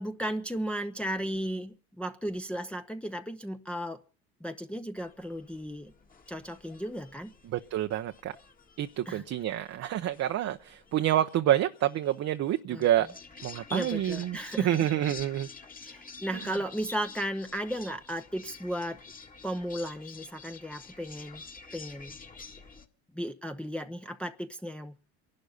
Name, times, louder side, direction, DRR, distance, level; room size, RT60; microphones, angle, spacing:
voice 1, 0.0-4.0 4.4-5.9 6.3-7.3 9.1-9.2 12.7-12.8 13.7-15.1 15.8-19.0 19.4-21.4 21.7-22.2 23.1-24.9, equal, 5° left, 0.8 m, -35 dB
sound 1, 5.0-22.8, left 5 dB, 25° left, 1.8 m, -49 dB
voice 2, 7.5-8.4 8.8-13.1 13.4-15.5 16.3-16.4, right 12 dB, 50° right, 0.9 m, -28 dB
28.5 x 12.0 x 4.0 m
supercardioid pair, 90°, 33 cm